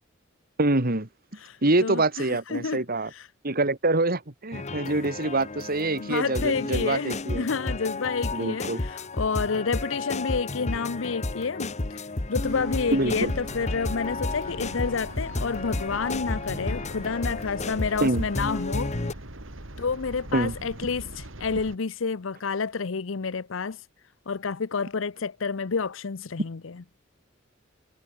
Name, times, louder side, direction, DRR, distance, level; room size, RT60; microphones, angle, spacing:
voice 1, 0.6-1.1 1.6-3.1 3.4-7.5 8.3-8.8 12.9-13.3 18.0-18.2 20.3-20.5, right 2 dB, 50° right, 2.3 m, -25 dB
voice 2, 1.3-3.3 6.0-18.9 19.8-23.9 24.3-26.8, left 5 dB, 70° left, 0.7 m, -29 dB
sound 1, 4.5-19.1, left 2 dB, 35° left, 1.1 m, -32 dB
sound 2, 12.5-21.8, right 1 dB, 75° right, 3.5 m, -41 dB
head